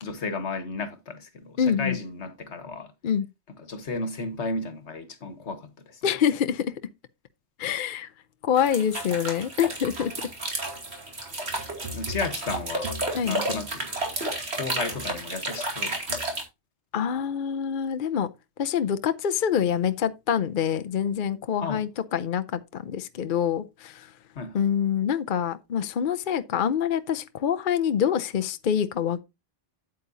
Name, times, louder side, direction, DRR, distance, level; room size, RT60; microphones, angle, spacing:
voice 1, 0.0-2.9 3.6-6.0 11.9-13.0 13.2-13.9 14.5-16.2 21.6-21.9 24.3-24.6, left 3 dB, 75° left, 1.7 m, -33 dB
voice 2, 1.6-2.0 3.0-3.3 6.0-6.7 7.6-8.1 8.4-10.1 13.1-13.4 16.9-18.3 18.6-24.1 24.5-29.2, left 8 dB, 55° left, 0.7 m, -26 dB
sound 1, 8.6-16.4, right 2 dB, 65° right, 2.8 m, -32 dB
8.7 x 8.5 x 2.7 m
omnidirectional pair, 1.2 m